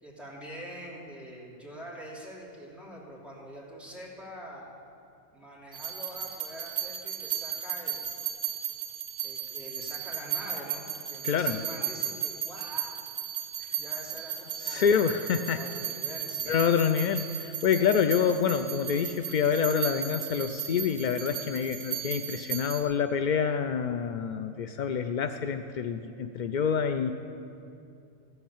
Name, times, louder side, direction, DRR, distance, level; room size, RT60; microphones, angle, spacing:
voice 1, 0.0-4.7 5.3-8.1 9.2-10.8 11.1-13.0 13.7-14.9 15.4-16.6, equal, ahead, -7 dB, 2.9 m, -44 dB
sound 1, 5.7-22.8, right 10 dB, 65° right, 1.7 m, -35 dB
voice 2, 11.2-11.6 14.6-15.6 16.5-27.1, left 7 dB, 80° left, 8 dB, 0.4 m, -27 dB
14.5 x 7.9 x 7.2 m, 2.6 s
omnidirectional pair, 1.3 m